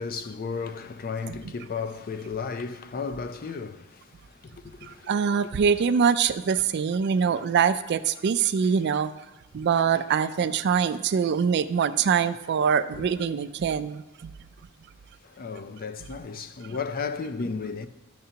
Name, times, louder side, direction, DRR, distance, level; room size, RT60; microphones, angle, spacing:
voice 1, 0.0-5.1 5.4-5.5 7.1-7.6 10.4-10.6 13.0-13.1 15.2-17.9, left 5 dB, 45° left, 0.5 m, -34 dB
voice 2, 5.1-9.1 9.5-14.3, right 6 dB, 55° right, 0.4 m, -24 dB
12.5 x 6.7 x 2.8 m
head